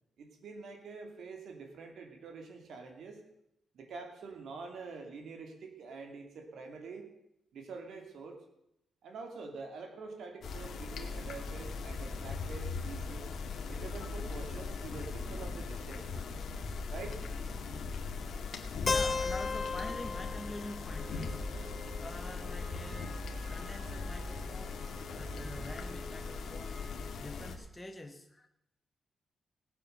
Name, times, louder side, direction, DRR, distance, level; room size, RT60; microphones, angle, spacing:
voice 1, 0.2-3.2 3.7-7.1 7.5-8.4 9.0-13.2 13.7-16.2 16.9-17.3, right 4 dB, 70° right, 4 dB, 2.6 m, -46 dB
sound 1, 10.4-27.6, left 4 dB, 65° left, 2.0 m, -39 dB
voice 2, 18.5-21.5 22.0-24.8 25.1-26.8 27.2-28.5, left 1 dB, 10° left, 4 dB, 1.1 m, -46 dB
Keyboard (musical), 18.9-22.8, left 4 dB, 30° left, 0.5 m, -36 dB
Wind instrument woodwind instrument, 20.9-27.2, right 1 dB, 20° right, 5.1 m, -52 dB
18.5 x 8.4 x 6.7 m, 0.81 s
wide cardioid pair, 150°, 0 cm